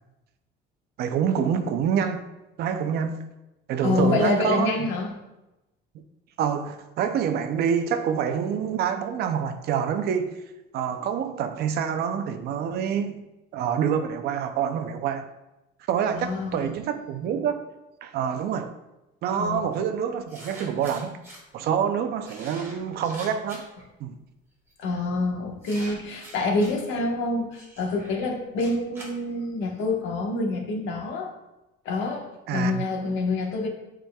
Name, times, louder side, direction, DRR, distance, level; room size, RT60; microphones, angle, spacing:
voice 1, 1.0-2.2 2.6-3.2 3.7-4.9 6.4-10.4 10.7-13.3 13.5-15.3 15.9-17.6 18.0-18.7 19.2-21.2 21.5-23.7 24.0-24.2 32.5-32.9, right 8 dB, 55° right, 8 dB, 0.6 m, -26 dB
voice 2, 3.8-5.1 16.1-16.8 19.4-19.6 24.8-31.3 31.8-33.7, left 3 dB, 65° left, 1 dB, 1.2 m, -27 dB
sound 1, 19.7-19.8 20.3-21.4 22.2-23.8 24.7-25.0 25.6-26.8 27.5-29.8, right 1 dB, 10° right, 1.4 m, -45 dB
9.0 x 5.0 x 2.3 m, 0.96 s
cardioid pair, 165°, 20 cm